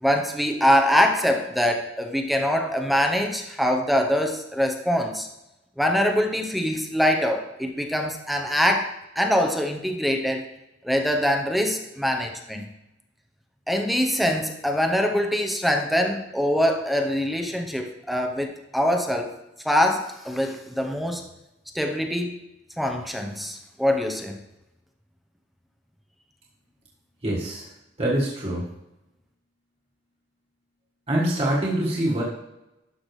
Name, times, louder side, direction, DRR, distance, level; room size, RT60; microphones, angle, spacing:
voice 1, 0.0-5.3 5.8-10.4 10.8-12.7 13.7-19.3 19.6-21.2 21.7-22.4 22.8-24.4, equal, ahead, 4 dB, 0.7 m, -23 dB
voice 2, 27.2-27.7 28.0-28.7 31.1-32.2, right 1 dB, 35° right, -6 dB, 1.5 m, -24 dB
12.0 x 5.8 x 3.2 m, 0.93 s
head